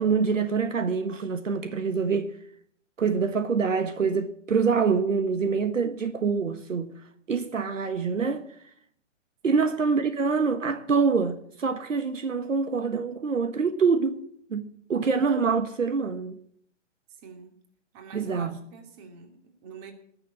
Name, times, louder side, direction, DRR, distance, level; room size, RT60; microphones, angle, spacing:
voice 1, 0.0-2.4 3.0-7.0 7.3-8.5 9.4-14.2 14.5-16.4 18.1-18.6, right 5 dB, 80° right, 1.3 m, -25 dB
voice 2, 17.1-17.6 17.9-19.9, right 6 dB, 30° right, 2.8 m, -46 dB
19.0 x 7.0 x 8.4 m
hypercardioid pair, 130°, 37 cm